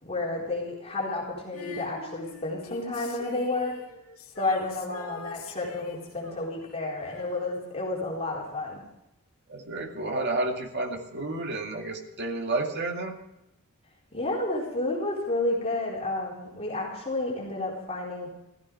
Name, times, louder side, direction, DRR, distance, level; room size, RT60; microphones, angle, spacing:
voice 1, 0.0-3.8 4.4-8.8 14.1-18.3, left 2 dB, 30° left, -3 dB, 4.2 m, -31 dB
Female singing, 1.5-8.1 8.4-8.5, left 4 dB, 70° left, 2.3 m, -45 dB
voice 2, 9.5-13.1, right 2 dB, 50° right, 3 dB, 2.3 m, -31 dB
15.5 x 15.0 x 4.8 m, 0.89 s
head